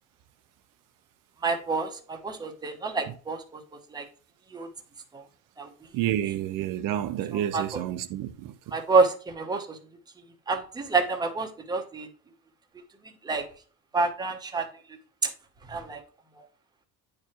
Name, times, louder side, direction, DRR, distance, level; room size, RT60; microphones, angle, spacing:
voice 1, 1.4-3.6 3.9-4.0 4.5-4.7 5.1-5.2 5.6-5.7 7.5-7.6 8.7-9.8 10.5-12.1 13.2-13.5 13.9-14.7 15.2-15.3 15.7-16.0, right 4 dB, 10° right, 0.9 m, -27 dB
voice 2, 5.9-8.8, right 12 dB, 65° right, 0.8 m, -30 dB
9.6 x 4.7 x 3.0 m
cardioid pair, 175°, 34 cm